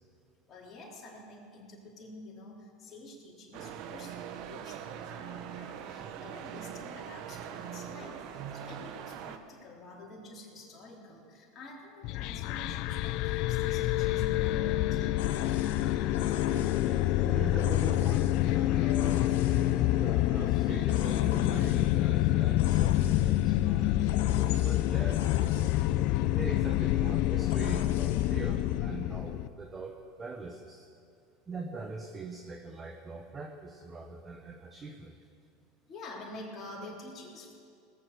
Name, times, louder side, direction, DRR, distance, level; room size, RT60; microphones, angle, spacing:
voice 1, 0.5-15.0 35.9-37.6, left 2 dB, 30° left, -4 dB, 3.7 m, -48 dB
sound 1, 3.5-9.4, right 9 dB, 60° right, 0.9 m, -42 dB
sound 2, 12.0-29.5, left 14 dB, 60° left, 0.4 m, -27 dB
sound 3, 15.2-28.8, left 9 dB, 80° left, 1.0 m, -44 dB
voice 2, 16.5-16.8 17.2-25.7 26.3-30.9 31.5-35.3, right 3 dB, 20° right, 3 dB, 1.1 m, -42 dB
19.0 x 7.4 x 7.9 m, 2.3 s
supercardioid pair, 115°, 0 cm